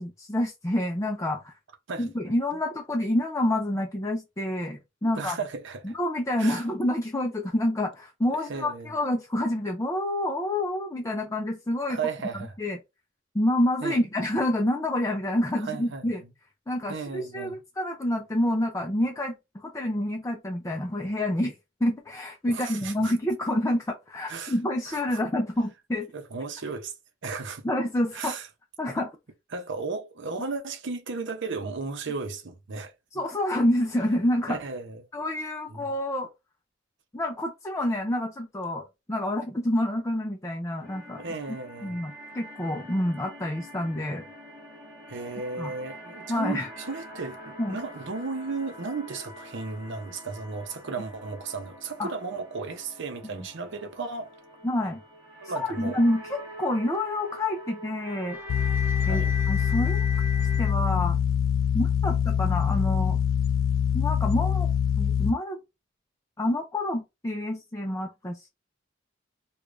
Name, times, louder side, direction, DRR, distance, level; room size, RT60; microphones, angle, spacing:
voice 1, 0.0-1.5 2.0-5.4 5.8-12.0 12.6-12.8 13.3-16.2 16.7-21.6 21.8-26.1 27.6-28.4 28.8-29.1 33.1-34.6 35.1-36.3 37.1-41.2 41.8-44.2 45.6-45.7 46.3-46.7 47.6-47.8 52.0-52.1 53.3-53.5 54.6-55.0 55.6-58.4 59.1-60.1 60.6-61.2 61.7-63.2 63.9-64.7 65.0-65.6 66.4-68.5, left 1 dB, 15° left, 0.5 m, -28 dB
voice 2, 5.0-5.9 6.4-6.6 8.5-9.0 11.9-12.5 13.8-14.0 15.6-16.1 16.9-17.6 22.5-23.1 24.3-24.5 24.9-25.2 26.1-26.9 27.2-27.6 28.1-28.5 29.5-33.2 34.5-35.1 35.7-35.9 41.2-42.0 45.1-54.3 55.4-56.0 59.0-59.4, right 4 dB, 65° right, 0.7 m, -35 dB
sound 1, 40.8-60.7, left 2 dB, 10° right, 1.4 m, -42 dB
sound 2, 58.5-65.3, left 8 dB, 75° left, 0.3 m, -24 dB
4.8 x 2.3 x 2.5 m
head